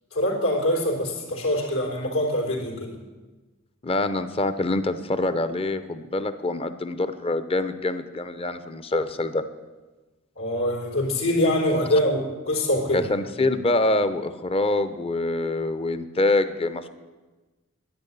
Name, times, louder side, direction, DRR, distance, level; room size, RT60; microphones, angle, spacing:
voice 1, 0.1-2.9 10.4-13.1, left 1 dB, 80° left, 1 dB, 3.9 m, -24 dB
voice 2, 3.8-9.4 12.9-16.9, left 2 dB, 25° left, 11 dB, 0.7 m, -25 dB
10.5 x 10.5 x 9.9 m, 1.2 s
head